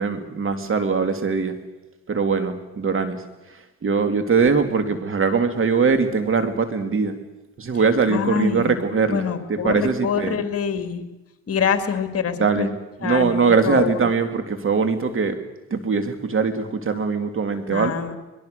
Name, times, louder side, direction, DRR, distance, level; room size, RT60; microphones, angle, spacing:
voice 1, 0.0-1.6 2.1-3.2 3.5-7.2 7.6-9.2 9.5-10.4 12.4-12.7 13.0-15.4 15.7-17.9, right 5 dB, 45° right, 8 dB, 2.7 m, -21 dB
voice 2, 8.1-8.8 9.1-11.0 11.5-12.7 13.0-14.0 17.7-18.2, left 7 dB, 50° left, 8 dB, 2.4 m, -25 dB
23.0 x 22.0 x 6.8 m, 1.1 s
cardioid pair, 90°, 30 cm